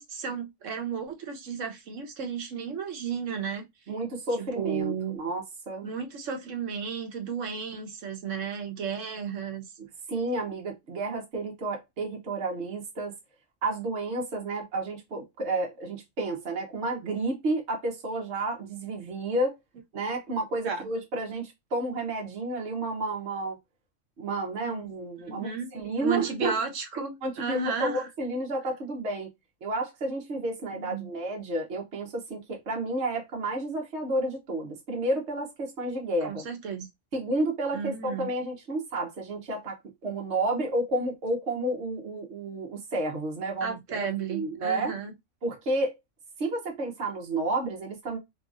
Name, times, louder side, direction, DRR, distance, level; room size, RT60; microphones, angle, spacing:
voice 1, 0.0-3.6 4.4-5.2 5.8-9.6 20.6-20.9 24.6-24.8 25.2-25.7 26.0-28.1 30.7-31.1 36.2-36.9 37.7-38.3 43.6-45.1, right 6 dB, 80° right, 1.2 m, -33 dB
voice 2, 3.9-5.9 10.1-13.2 13.6-19.5 19.9-23.6 24.2-25.5 25.7-26.6 27.2-29.3 29.6-36.5 37.1-45.0 45.4-45.9 46.4-48.2, right 2 dB, 65° right, 1.3 m, -31 dB
3.1 x 2.9 x 2.4 m
omnidirectional pair, 1.3 m